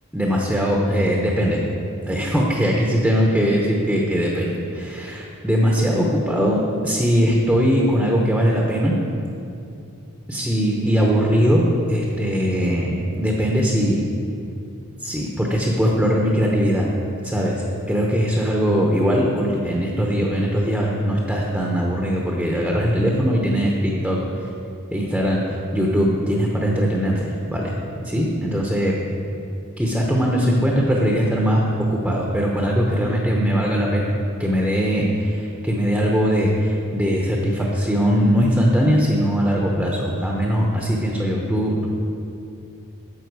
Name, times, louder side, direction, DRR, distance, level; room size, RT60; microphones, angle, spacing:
voice 1, 0.1-1.6 2.1-8.9 10.3-11.6 11.9-14.1 15.0-16.9 17.2-24.2 24.9-27.7 28.0-28.9 29.8-34.1 34.4-41.9, equal, 5° right, -2 dB, 0.8 m, -20 dB
10.5 x 7.0 x 4.7 m, 2.6 s
head